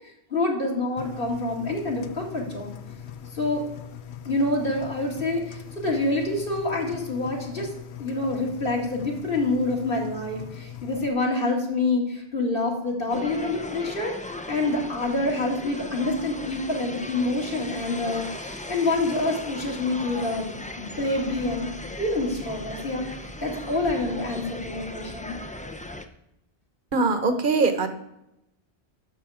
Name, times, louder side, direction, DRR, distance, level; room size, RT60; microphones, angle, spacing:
voice 1, 0.3-2.8 3.3-3.6 4.2-7.7 8.0-14.1 14.5-21.7 22.0-23.2 23.4-25.3, left 2 dB, 55° left, -1 dB, 2.3 m, -27 dB
Engine, 1.0-11.1, left 9 dB, 80° left, 0.9 m, -41 dB
sound 1, 13.1-26.1, left 1 dB, 10° left, 0.4 m, -38 dB
voice 2, 26.9-27.9, right 4 dB, 50° right, 8 dB, 1.2 m, -22 dB
11.0 x 6.9 x 4.9 m, 0.84 s
omnidirectional pair, 1.1 m